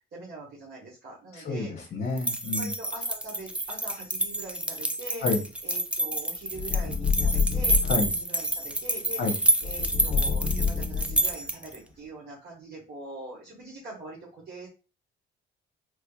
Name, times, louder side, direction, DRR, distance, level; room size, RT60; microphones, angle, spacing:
voice 1, 0.1-1.9 2.6-5.3 5.6-14.7, right 2 dB, 55° right, -6 dB, 1.3 m, -43 dB
voice 2, 1.4-2.7 5.2-5.4 7.9-8.1 9.2-9.4, left 3 dB, 55° left, -1 dB, 0.8 m, -29 dB
sound 1, 2.2-11.8, right 1 dB, 5° right, 0.4 m, -28 dB
sound 2, 6.5-8.1 9.6-11.4, left 5 dB, 20° left, 0.8 m, -27 dB
3.2 x 3.1 x 2.3 m, 0.32 s
cardioid pair, 90°, 20 cm